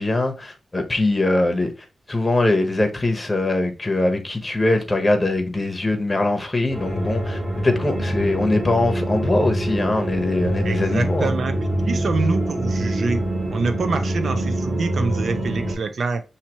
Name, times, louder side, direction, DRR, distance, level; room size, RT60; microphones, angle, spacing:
voice 1, 0.0-1.7 2.1-11.3, left 2 dB, 20° left, 1.1 m, -22 dB
sound 1, 6.7-15.7, right 1 dB, 20° right, 2.2 m, -25 dB
voice 2, 10.6-13.2 13.5-16.2, right 4 dB, 65° right, 0.7 m, -26 dB
5.7 x 2.9 x 3.0 m
wide cardioid pair, 100°, 0 cm